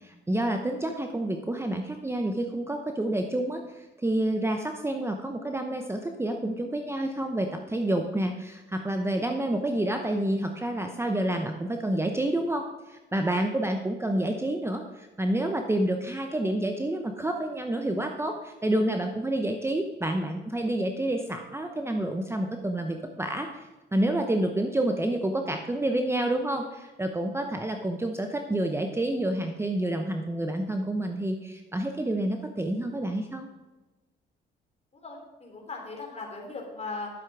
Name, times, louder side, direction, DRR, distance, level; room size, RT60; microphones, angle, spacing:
voice 1, 0.0-33.5, right 1 dB, 15° right, 4 dB, 0.9 m, -29 dB
voice 2, 34.9-37.1, left 3 dB, 30° left, 0 dB, 3.4 m, -38 dB
11.0 x 7.5 x 4.8 m, 1.2 s
cardioid pair, 90°, 20 cm